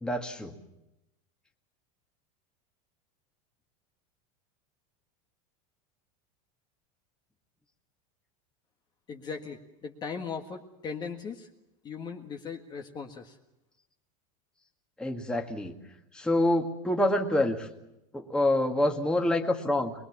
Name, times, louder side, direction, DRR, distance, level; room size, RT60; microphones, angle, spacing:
voice 1, 0.0-0.6 15.0-15.8 16.1-17.7 18.1-19.9, left 1 dB, 5° left, 3 dB, 1.9 m, -26 dB
voice 2, 9.1-11.5 11.8-13.4, left 5 dB, 25° left, 4 dB, 1.7 m, -38 dB
23.0 x 22.5 x 7.3 m, 0.89 s
supercardioid pair, 160°, 18 cm